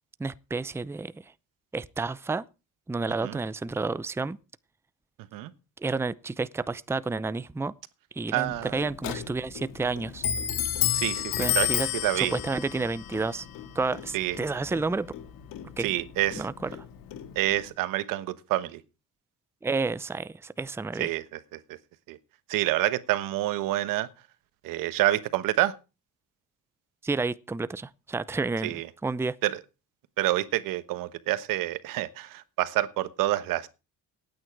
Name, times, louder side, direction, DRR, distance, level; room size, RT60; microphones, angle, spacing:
voice 1, 0.2-1.1 1.7-2.4 2.9-4.4 5.8-7.7 8.1-10.2 11.4-11.9 12.2-13.5 13.7-15.1 15.8-15.9 16.4-16.5 19.6-21.1 27.0-28.7 29.0-29.4, right 3 dB, 10° right, 0.6 m, -30 dB
voice 2, 8.3-8.8 10.9-12.3 14.1-14.4 15.8-16.5 17.3-18.8 21.0-21.8 22.1-22.2 22.5-24.1 24.6-25.7 28.6-28.9 29.4-29.6 30.2-33.7, right 15 dB, 85° right, 1.2 m, -28 dB
Clock, 8.4-17.7, left 11 dB, 85° left, 2.2 m, -32 dB
17.5 x 9.2 x 4.7 m
cardioid pair, 100°, 32 cm